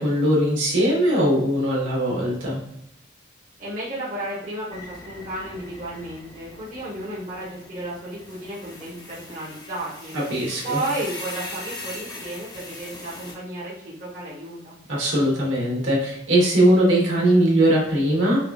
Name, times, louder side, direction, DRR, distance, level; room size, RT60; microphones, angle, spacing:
voice 1, 0.0-2.6 10.1-10.8 14.9-18.5, right 1 dB, 85° right, -4 dB, 1.2 m, -20 dB
voice 2, 3.6-10.2 10.6-14.8, right 1 dB, 40° right, -7 dB, 1.1 m, -33 dB
sound 1, 4.7-13.3, left 2 dB, 20° left, 0.6 m, -40 dB
4.7 x 2.3 x 2.3 m, 0.80 s
head